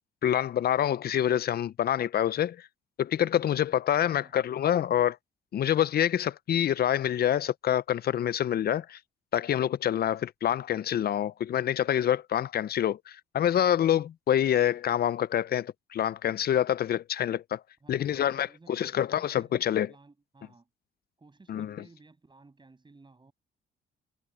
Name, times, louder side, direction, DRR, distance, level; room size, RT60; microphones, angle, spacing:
voice 1, 0.2-2.6 3.0-5.2 5.5-9.0 9.3-17.6 17.9-19.9 21.5-21.8, left 10 dB, 50° left, 0.6 m, -26 dB
voice 2, 3.9-4.5 17.8-20.7 21.2-23.3, right 3 dB, 25° right, 7.2 m, -56 dB
cardioid pair, 90°, 20 cm